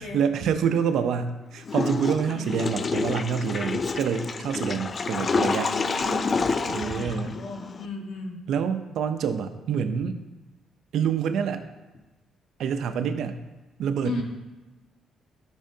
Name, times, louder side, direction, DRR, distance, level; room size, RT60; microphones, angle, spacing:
voice 1, 0.0-5.7 6.6-7.4 8.5-10.2 10.9-11.6 12.6-13.4 13.8-14.2, right 7 dB, 75° right, 9 dB, 0.6 m, -27 dB
Water / Toilet flush, 1.7-7.9, left 4 dB, 40° left, 0.4 m, -28 dB
voice 2, 5.1-6.4 6.8-8.4 14.0-14.2, left 3 dB, 80° left, 1 dB, 1.6 m, -36 dB
12.5 x 6.1 x 2.8 m, 1.1 s
cardioid pair, 90°, 0 cm